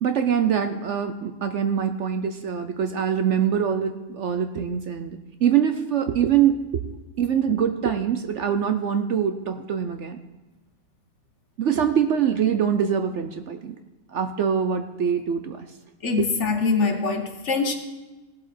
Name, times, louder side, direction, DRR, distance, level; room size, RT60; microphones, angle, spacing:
voice 1, 0.0-6.7 7.2-10.2 11.6-13.7 14.1-15.6, right 8 dB, 60° right, 8 dB, 0.9 m, -24 dB
voice 2, 16.0-17.7, left 4 dB, 55° left, 5 dB, 1.4 m, -23 dB
17.5 x 7.6 x 4.3 m, 1.2 s
omnidirectional pair, 1.6 m